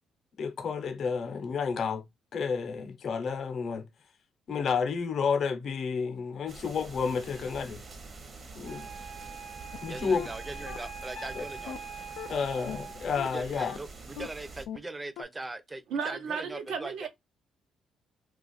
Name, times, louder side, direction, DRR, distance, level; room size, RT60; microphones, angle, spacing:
voice 1, 0.4-2.0 2.3-3.9 4.5-7.8 8.5-8.8 9.8-10.3 11.3-11.4 12.3-13.8, left 5 dB, 60° left, 0.7 m, -30 dB
sound 1, 6.5-14.7, right 3 dB, 45° right, 0.8 m, -46 dB
Wind instrument woodwind instrument, 8.6-13.2, right 5 dB, 65° right, 1.1 m, -44 dB
sound 2, 9.7-9.8 10.2-10.3 10.7-10.8 11.2-11.3 11.7-11.8 12.2-12.3 12.7-12.8 13.2-13.3 13.7-13.8 14.2-14.3 14.7-14.8 15.2-15.3, left 9 dB, 90° left, 0.3 m, -39 dB
voice 2, 9.9-12.0 13.3-17.1, right 2 dB, 20° right, 0.5 m, -40 dB
voice 3, 15.9-17.1, right 6 dB, 85° right, 0.7 m, -34 dB
2.5 x 2.4 x 4.0 m
cardioid pair, 90°, 0 cm